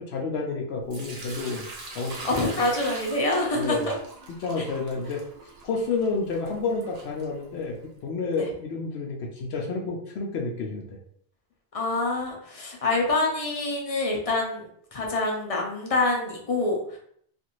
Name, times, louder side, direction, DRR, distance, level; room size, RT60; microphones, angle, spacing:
voice 1, 0.0-1.7 1.9-2.6 3.6-3.9 4.4-5.2 5.6-7.8 8.0-11.0, left 4 dB, 80° left, 0 dB, 0.8 m, -30 dB
Sink (filling or washing) / Liquid, 0.9-7.8, right 2 dB, 45° right, 0.6 m, -42 dB
voice 2, 2.2-4.0 8.4-8.5 11.7-14.6 14.9-17.0, left 2 dB, 40° left, -1 dB, 0.6 m, -26 dB
2.5 x 2.5 x 2.9 m, 0.65 s
omnidirectional pair, 1.1 m